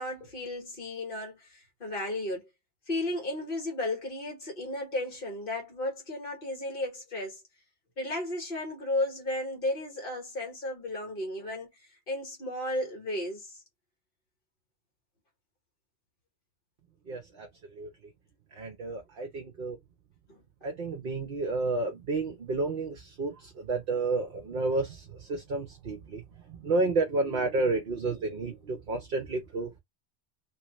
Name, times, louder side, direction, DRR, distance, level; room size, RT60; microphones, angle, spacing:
voice 1, 0.0-2.5 2.9-7.4 8.0-11.7 12.1-13.6 20.3-20.4, left 1 dB, 55° left, 1.7 m, -34 dB
voice 2, 17.1-17.9 18.5-19.8 20.6-29.8, right 3 dB, 60° right, 1.0 m, -31 dB
3.1 x 2.8 x 3.0 m
omnidirectional pair, 1.1 m